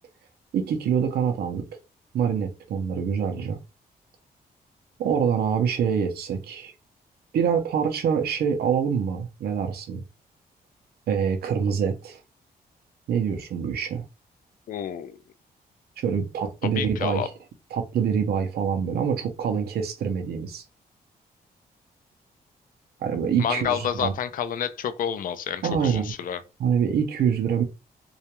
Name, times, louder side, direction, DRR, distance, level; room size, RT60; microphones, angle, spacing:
voice 1, 0.5-1.6 2.1-3.6 5.0-6.7 7.3-10.0 11.1-12.2 13.1-14.0 16.0-17.3 17.7-20.6 23.0-24.1 25.6-26.1 26.6-27.6, right 7 dB, 75° right, 0.5 m, -25 dB
voice 2, 14.7-15.2 16.6-17.3 23.4-26.4, left 8 dB, 60° left, 0.4 m, -29 dB
2.3 x 2.1 x 2.8 m
cardioid pair, 130°, 16 cm